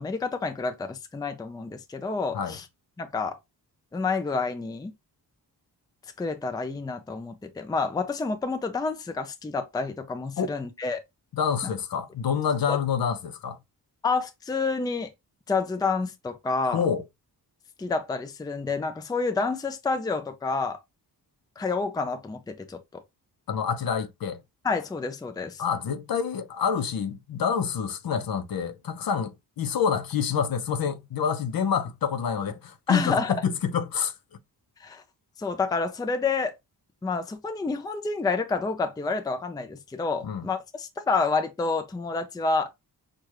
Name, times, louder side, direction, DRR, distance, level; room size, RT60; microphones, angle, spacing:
voice 1, 0.0-2.7 3.0-3.4 3.9-4.9 6.2-11.0 12.7-12.8 14.0-15.1 15.5-16.8 17.8-20.8 21.6-23.0 24.6-25.6 32.9-33.4 34.8-35.0 35.4-36.5 37.0-42.7, left 4 dB, 10° left, 0.4 m, -29 dB
voice 2, 11.3-13.6 16.7-17.0 23.5-24.4 25.6-34.1 40.2-40.5, left 7 dB, 60° left, 0.7 m, -27 dB
6.3 x 2.4 x 3.0 m
wide cardioid pair, 170°, 40 cm